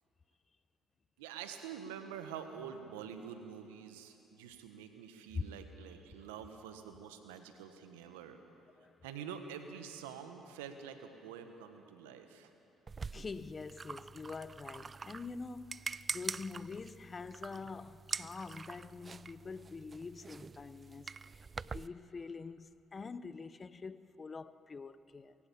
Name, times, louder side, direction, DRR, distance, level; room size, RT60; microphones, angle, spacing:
voice 1, 1.2-8.4 9.0-12.5, right 8 dB, 90° right, 1.3 m, -47 dB
sound 1, 12.9-21.9, right 4 dB, 35° right, 0.4 m, -45 dB
voice 2, 13.1-21.1 21.7-25.4, left 4 dB, 35° left, 0.8 m, -45 dB
21.5 x 16.0 x 8.7 m
hypercardioid pair, 55°, 0 cm